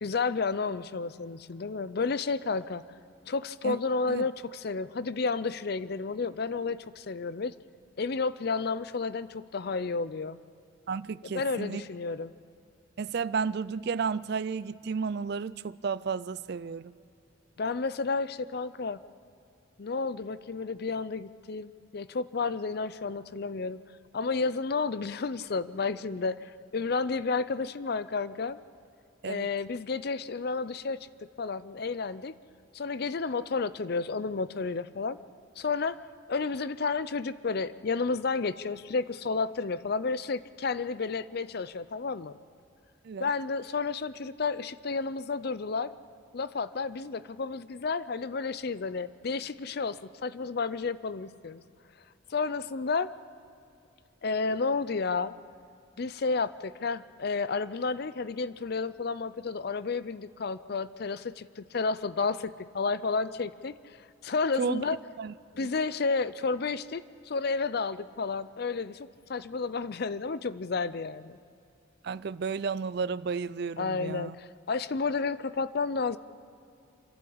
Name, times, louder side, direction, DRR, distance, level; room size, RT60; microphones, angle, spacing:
voice 1, 0.0-2.8 3.3-7.5 8.0-10.4 11.2-12.3 17.6-19.0 19.8-23.8 24.1-28.6 29.2-31.1 31.4-32.3 32.7-35.2 35.6-36.0 36.3-42.3 43.2-45.9 46.3-51.6 52.3-53.1 54.2-55.3 56.0-64.0 64.2-65.0 65.6-71.4 73.8-76.2, left 4 dB, 55° left, 0.5 m, -31 dB
voice 2, 10.9-11.8 13.0-16.9 29.2-29.5 43.1-43.3 64.6-64.8 65.2-65.3 72.0-74.3, right 5 dB, 55° right, 0.4 m, -32 dB
27.0 x 11.5 x 8.7 m
head